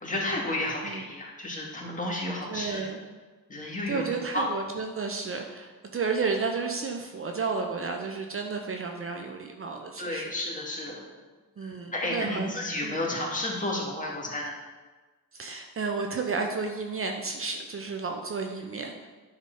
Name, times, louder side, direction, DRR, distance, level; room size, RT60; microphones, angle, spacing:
voice 1, 0.0-2.8 3.5-4.5 10.0-11.0 11.6-14.5, left 1 dB, 20° left, -3 dB, 2.2 m, -32 dB
voice 2, 2.5-3.0 3.6-10.3 11.6-12.5 12.8-13.0 15.3-19.1, right 4 dB, 40° right, 4 dB, 0.8 m, -32 dB
9.6 x 4.0 x 5.6 m, 1.3 s
cardioid pair, 95°, 35 cm